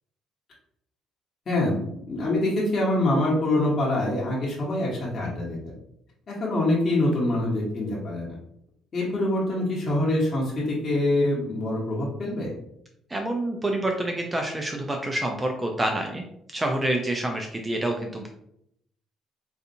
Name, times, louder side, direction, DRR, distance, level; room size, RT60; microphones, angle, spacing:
voice 1, 1.5-1.8 2.1-5.7 6.3-8.3 8.9-12.5, left 1 dB, 45° left, -5 dB, 1.1 m, -25 dB
voice 2, 13.1-16.2 16.5-18.3, right 1 dB, 20° right, 2 dB, 0.4 m, -27 dB
4.0 x 2.6 x 2.6 m, 0.74 s
cardioid pair, 100°, 0 cm